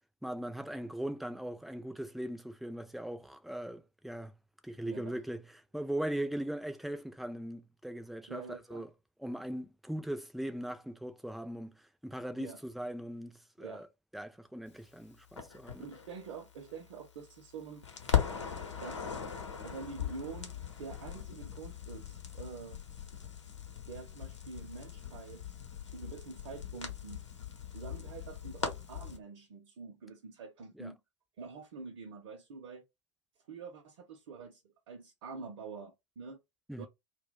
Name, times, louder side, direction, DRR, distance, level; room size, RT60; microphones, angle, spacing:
voice 1, 0.2-4.3 4.6-8.9 9.2-13.9 14.1-15.9 30.7-30.9 36.7-36.9, right 1 dB, ahead, 0.4 m, -39 dB
voice 2, 4.9-5.2 8.3-8.8 12.4-12.6 13.6-13.9 15.8-17.9 18.8-19.2 19.6-22.8 23.9-25.6 25.8-27.3 27.7-31.0 31.4-32.8 33.5-34.6 34.9-36.4 36.8-36.9, right 5 dB, 55° right, 0.6 m, -46 dB
Crackle, 15.4-17.5 17.8-29.2, left 8 dB, 75° left, 0.8 m, -39 dB
2.3 x 2.2 x 3.7 m
figure-of-eight pair, 80°, 15 cm